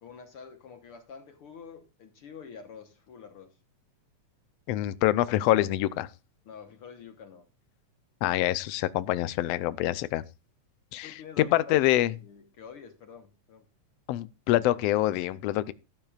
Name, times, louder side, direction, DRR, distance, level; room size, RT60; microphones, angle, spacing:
voice 1, 0.0-3.5 6.4-7.5 11.0-11.8 12.0-13.7, left 6 dB, 60° left, 1.7 m, -47 dB
voice 2, 4.7-6.1 8.2-10.2 10.9-12.1 14.1-15.7, left 15 dB, 80° left, 1.4 m, -26 dB
13.5 x 12.5 x 2.4 m
omnidirectional pair, 3.5 m